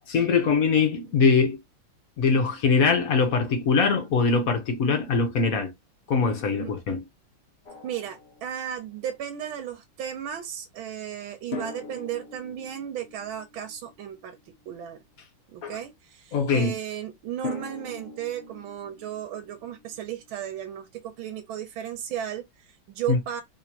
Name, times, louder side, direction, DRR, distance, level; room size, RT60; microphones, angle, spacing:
voice 1, 0.1-1.6 2.2-5.7 6.1-7.0 15.6-15.8 16.3-16.7 23.1-23.2, left 5 dB, 60° left, 1.0 m, -22 dB
Drum, 7.7-9.0 11.5-14.5 17.4-20.3, left 2 dB, 80° left, 0.5 m, -41 dB
voice 2, 7.8-14.4 14.7-15.0 15.5-23.4, right 10 dB, 75° right, 1.5 m, -35 dB
3.7 x 3.0 x 2.8 m
omnidirectional pair, 2.3 m